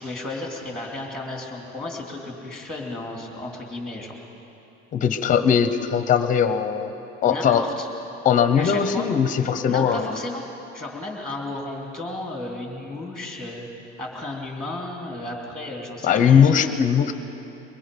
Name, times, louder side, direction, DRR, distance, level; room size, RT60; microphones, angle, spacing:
voice 1, 0.0-4.1 7.3-7.9 8.6-9.1 9.6-10.4 10.7-13.7 14.0-16.7, left 2 dB, ahead, 0 dB, 2.6 m, -33 dB
voice 2, 4.9-6.9 7.2-7.6 8.2-10.2 16.0-17.1, left 7 dB, 25° left, 10 dB, 0.9 m, -19 dB
22.5 x 22.5 x 5.3 m, 3.0 s
cardioid pair, 175°, 30 cm